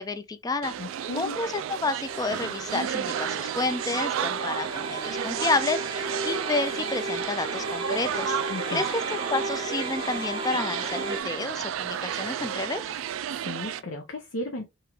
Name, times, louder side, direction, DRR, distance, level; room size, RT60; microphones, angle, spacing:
voice 1, 0.0-0.8 1.1-8.4 8.7-9.0 9.3-12.8, left 3 dB, 20° left, 0.3 m, -30 dB
sound 1, 0.6-13.8, right 9 dB, 85° right, 0.3 m, -32 dB
voice 2, 0.8-1.4 8.5-8.9 13.4-14.7, left 1 dB, 70° left, 0.7 m, -35 dB
sound 2, 2.0-11.2, right 2 dB, 30° right, 0.6 m, -35 dB
3.7 x 2.9 x 2.9 m
head